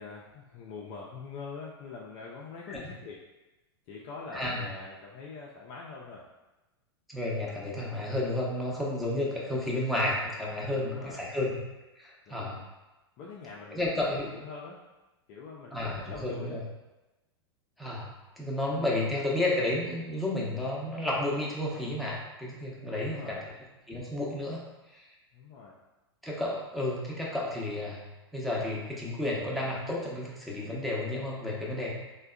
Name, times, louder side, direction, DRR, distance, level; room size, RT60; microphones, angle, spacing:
voice 1, 0.0-3.2 3.9-6.2 10.7-11.4 12.3-12.6 13.2-13.8 14.2-14.8 15.3-16.6 22.9-23.5 25.3-25.8, left 4 dB, 45° left, -4 dB, 0.4 m, -44 dB
voice 2, 4.3-4.7 7.1-11.6 12.0-12.6 13.7-14.3 15.7-16.6 17.8-18.1 18.4-23.4 23.9-24.6 24.9-25.0 26.2-28.0 28.3-31.9, left 1 dB, ahead, -5 dB, 0.7 m, -31 dB
3.4 x 2.1 x 2.3 m, 1.1 s
hypercardioid pair, 105°, 14 cm